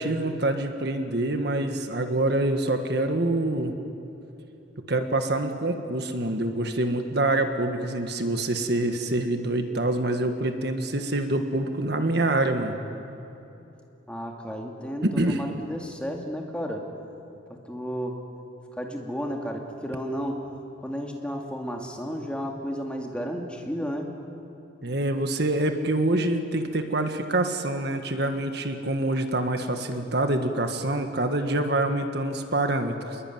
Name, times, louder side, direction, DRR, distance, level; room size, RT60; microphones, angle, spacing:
voice 1, 0.0-3.7 4.9-12.7 15.0-15.4 24.8-33.2, right 2 dB, 55° right, 6 dB, 1.6 m, -26 dB
voice 2, 14.1-16.8 17.5-18.2 18.8-20.4 20.8-24.1, equal, 5° left, 1 dB, 2.4 m, -32 dB
28.5 x 22.0 x 9.4 m, 2.9 s
head